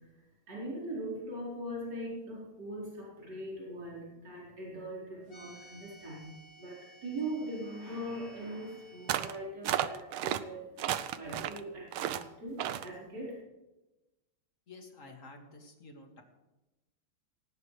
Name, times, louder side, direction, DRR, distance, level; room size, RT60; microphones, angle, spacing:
voice 1, 0.0-10.7 11.1-13.4, right 1 dB, 55° right, -6 dB, 5.1 m, -41 dB
sound 1, 5.3-9.3, right 1 dB, 65° left, 2.9 m, -56 dB
sound 2, 9.1-9.4 9.6-10.4 10.8-11.6 11.9-12.2 12.6-12.9, right 12 dB, 80° right, 1.6 m, -32 dB
voice 2, 14.7-16.2, left 2 dB, 40° left, 3 dB, 2.3 m, -51 dB
18.5 x 17.5 x 3.3 m, 1.0 s
omnidirectional pair, 2.3 m